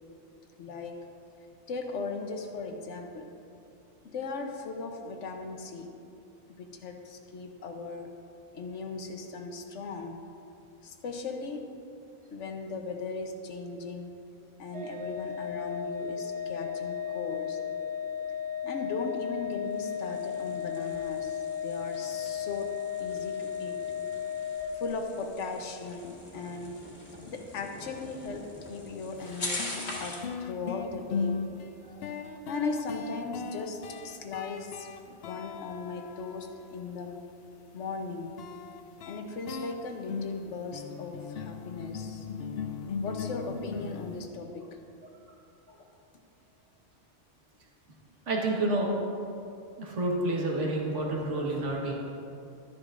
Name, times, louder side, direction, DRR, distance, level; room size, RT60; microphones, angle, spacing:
voice 1, 0.6-1.0 1.7-3.3 4.0-5.9 6.5-8.1 8.5-10.2 10.8-11.7 12.3-14.1 14.6-17.6 18.6-23.8 24.7-26.8 27.3-31.4 32.5-37.2 37.7-38.4 39.0-42.3 43.0-44.7 45.8-45.9, left 4 dB, 80° left, 4 dB, 1.1 m, -38 dB
Organ, 14.7-25.4, left 8 dB, 70° right, 0.8 m, -35 dB
sound 1, 19.6-30.3, left 1 dB, 40° left, 1.5 m, -43 dB
sound 2, 29.2-29.3 29.6-36.8 38.4-44.2, left 5 dB, 65° left, 0.7 m, -38 dB
voice 2, 48.3-48.9 49.8-51.9, right 2 dB, 90° right, -2 dB, 1.7 m, -29 dB
12.0 x 9.8 x 2.5 m, 2.7 s
omnidirectional pair, 1.2 m